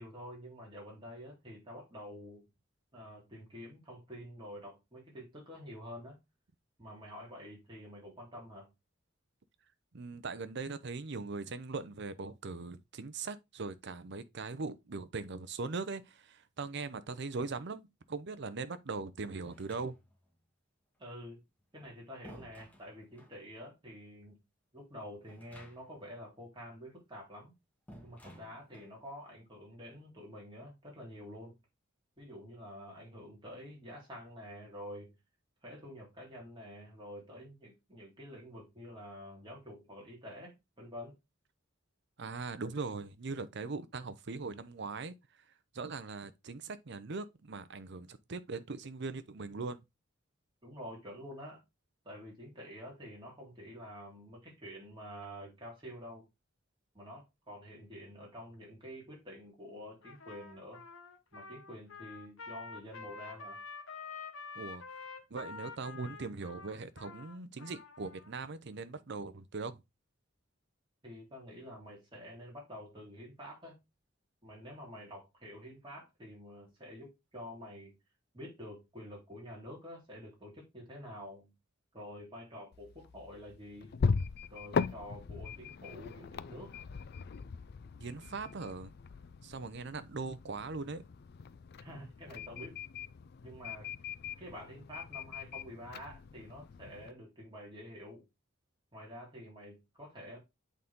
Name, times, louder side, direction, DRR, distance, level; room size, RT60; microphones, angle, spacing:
voice 1, 0.0-2.4 2.9-6.2 6.8-8.7 21.0-21.4 21.7-24.4 24.7-27.5 28.0-31.6 32.2-35.1 35.6-41.1 50.6-51.6 52.0-56.3 56.9-60.8 61.3-63.6 71.0-73.8 74.4-78.0 78.3-81.5 81.9-83.9 84.5-86.7 91.8-92.7 93.4-93.9 94.4-98.2 98.9-100.4, equal, 25° right, 3.5 m, -48 dB
voice 2, 9.9-20.0 42.2-45.2 45.7-49.8 64.6-64.8 65.3-69.8 88.0-88.9 89.4-91.0, right 4 dB, 60° right, 0.7 m, -40 dB
sound 1, 19.5-20.3 21.6-23.4 25.3-26.1 26.3-26.4 27.9-29.0, equal, 10° left, 1.6 m, -55 dB
Trumpet, 60.0-68.3, left 4 dB, 85° left, 1.1 m, -47 dB
sound 2, 82.7-97.1, left 5 dB, 55° left, 0.4 m, -39 dB
8.3 x 4.0 x 3.6 m
head